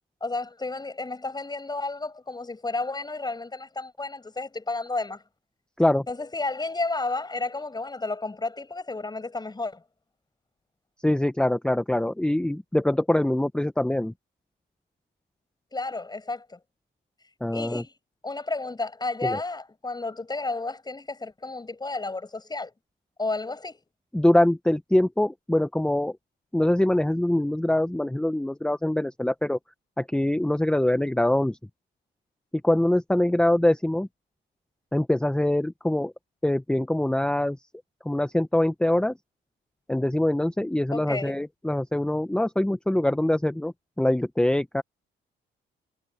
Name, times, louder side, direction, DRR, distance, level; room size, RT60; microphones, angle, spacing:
voice 1, 0.2-5.2 6.1-9.8 15.7-16.6 17.5-17.9 18.2-22.7 23.2-23.8 40.9-41.4, left 3 dB, 20° left, 7.1 m, -32 dB
voice 2, 11.0-14.1 17.4-17.8 19.2-19.4 24.1-26.1 26.5-29.6 30.0-31.6 32.6-34.1 34.9-36.1 36.4-37.6 38.0-39.1 39.9-44.8, left 1 dB, 5° left, 0.8 m, -24 dB
cardioid pair, 90°, 20 cm